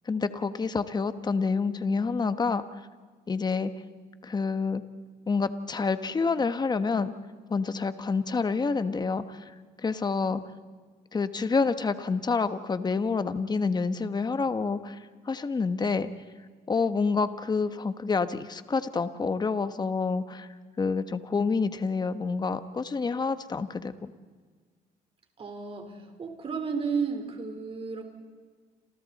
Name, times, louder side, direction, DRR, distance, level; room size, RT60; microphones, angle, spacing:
voice 1, 0.1-2.6 3.3-3.7 4.2-4.8 5.3-7.1 7.5-9.4 9.8-10.4 11.1-15.0 15.3-16.1 16.7-20.5 20.8-24.1, left 4 dB, 25° left, 11 dB, 1.2 m, -28 dB
voice 2, 25.4-28.0, right 5 dB, 35° right, 4 dB, 4.0 m, -33 dB
29.0 x 27.0 x 4.2 m, 1.5 s
cardioid pair, 110°, 17 cm